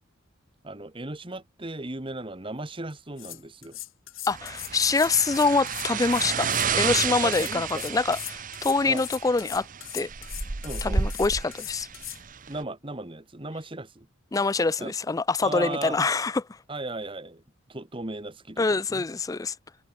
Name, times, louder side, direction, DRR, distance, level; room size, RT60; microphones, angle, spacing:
voice 1, 0.6-3.8 7.2-7.8 8.9-9.0 10.6-11.0 12.5-14.1 14.8-14.9 15.4-16.0 16.7-17.4 17.7-19.0, right 2 dB, 25° right, 1.4 m, -36 dB
sound 1, 2.9-3.0 3.2-12.2, left 16 dB, 80° left, 4.9 m, -39 dB
voice 2, 4.3-9.7 9.9-10.1 10.8-11.9 14.3-16.6 18.6-19.6, left 3 dB, 15° left, 0.3 m, -25 dB
sound 2, 4.3-12.6, right 6 dB, 40° right, 0.9 m, -31 dB
head